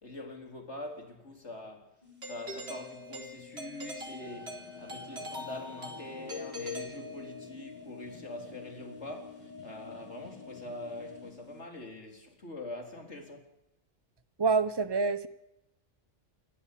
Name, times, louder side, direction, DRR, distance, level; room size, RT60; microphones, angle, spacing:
voice 1, 0.0-1.9 2.2-13.5, left 2 dB, 65° left, 4.3 m, -44 dB
sound 1, 2.0-11.6, left 7 dB, 35° right, 5.7 m, -56 dB
Doorbell, 2.2-7.6, left 1 dB, 55° right, 4.3 m, -42 dB
sound 2, 4.2-11.3, left 3 dB, 35° left, 4.6 m, -49 dB
voice 2, 14.4-15.3, right 4 dB, 20° right, 1.1 m, -26 dB
28.5 x 15.0 x 8.6 m
omnidirectional pair, 1.3 m